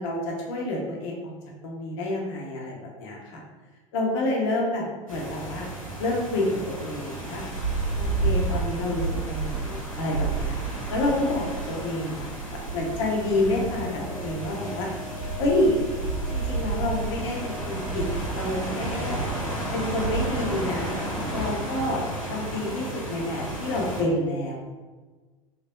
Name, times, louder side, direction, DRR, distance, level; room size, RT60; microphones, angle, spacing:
voice 1, 0.0-1.3 1.6-3.4 3.9-5.7 6.0-7.4 8.0-10.5 10.9-12.3 12.7-14.9 15.4-15.8 16.3-18.0 18.3-19.2 19.7-21.0 21.3-24.6, left 1 dB, 60° left, -1 dB, 1.0 m, -28 dB
sound 1, 5.1-24.0, right 3 dB, 85° left, 1.2 m, -31 dB
sound 2, 12.9-21.5, left 1 dB, 70° right, 1.3 m, -41 dB
3.4 x 3.2 x 2.6 m, 1.3 s
figure-of-eight pair, 80°, 17 cm